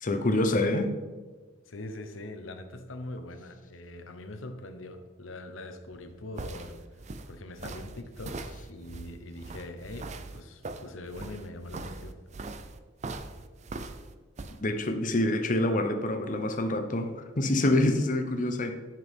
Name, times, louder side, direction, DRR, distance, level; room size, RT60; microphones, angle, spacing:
voice 1, 0.0-0.9 14.6-18.7, left 1 dB, 40° left, 7 dB, 0.8 m, -26 dB
voice 2, 1.7-6.8 7.3-8.4 8.7-12.2, left 2 dB, 80° left, 7 dB, 0.9 m, -42 dB
sound 1, 5.9-14.6, right 3 dB, 35° right, 0.5 m, -41 dB
11.0 x 6.0 x 3.7 m, 1.3 s
head